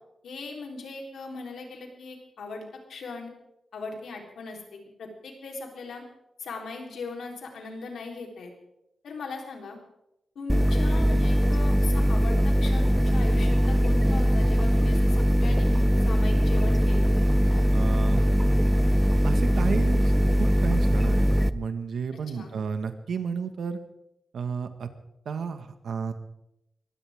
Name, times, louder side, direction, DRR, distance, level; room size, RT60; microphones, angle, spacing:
voice 1, 0.2-2.6 2.9-3.3 3.7-6.0 6.4-8.5 9.0-9.8 10.4-17.1 22.3-22.6, left 4 dB, 85° left, 1 dB, 3.9 m, -39 dB
sound 1, 10.5-21.5, equal, 5° right, 0.6 m, -21 dB
voice 2, 17.7-18.2 19.2-23.8 24.3-24.9 25.2-26.1, right 6 dB, 75° right, 8 dB, 1.7 m, -32 dB
22.5 x 16.5 x 3.7 m, 0.85 s
wide cardioid pair, 105°, 0 cm